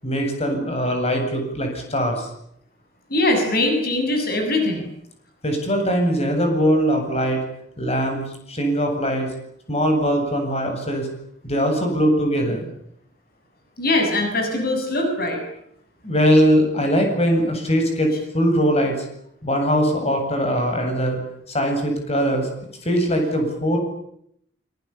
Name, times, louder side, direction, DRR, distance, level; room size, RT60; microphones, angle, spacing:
voice 1, 0.0-2.3 5.4-7.4 7.8-9.3 9.7-11.1 11.4-12.7 16.0-19.0 19.4-21.2 21.5-22.5 22.8-23.8, equal, 35° left, 4 dB, 8.0 m, -21 dB
voice 2, 3.1-4.9 13.8-15.4, left 2 dB, 55° left, 4 dB, 7.0 m, -21 dB
26.0 x 25.5 x 8.7 m, 0.73 s
head